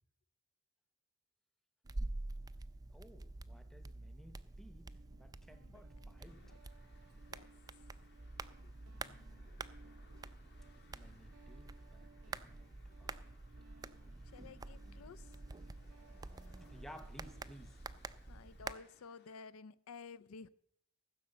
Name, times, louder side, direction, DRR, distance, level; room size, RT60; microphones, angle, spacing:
sound 1, 1.8-18.7, right 2 dB, 15° right, 0.4 m, -48 dB
voice 1, 2.9-6.4 8.9-9.5 10.9-12.7 13.0-13.4 14.7-15.1 16.0-17.8 18.3-18.4, equal, ahead, 0.9 m, -58 dB
Guitar, 4.9-17.5, right 4 dB, 80° right, 0.6 m, -65 dB
voice 2, 5.7-6.1 7.1-7.5 13.0-13.1 14.3-15.4 18.3-20.5, left 5 dB, 70° left, 0.4 m, -53 dB
sound 2, 6.2-19.5, left 3 dB, 50° left, 1.9 m, -69 dB
14.5 x 6.3 x 7.8 m
head